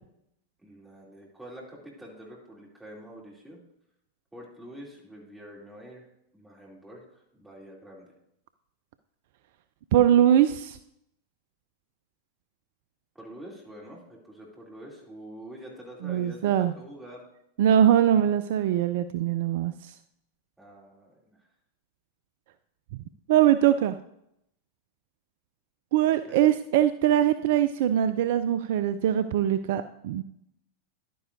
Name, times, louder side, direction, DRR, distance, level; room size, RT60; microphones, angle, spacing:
voice 1, 0.6-3.6 4.3-6.1 6.3-8.1 13.1-17.2 20.6-21.5 26.0-26.5, equal, 5° right, -3 dB, 2.8 m, -46 dB
voice 2, 9.9-10.8 16.0-16.7 17.6-19.9 23.3-24.0 25.9-30.2, right 11 dB, 50° right, 12 dB, 0.3 m, -22 dB
11.0 x 9.3 x 2.6 m, 0.78 s
figure-of-eight pair, 90°, 0 cm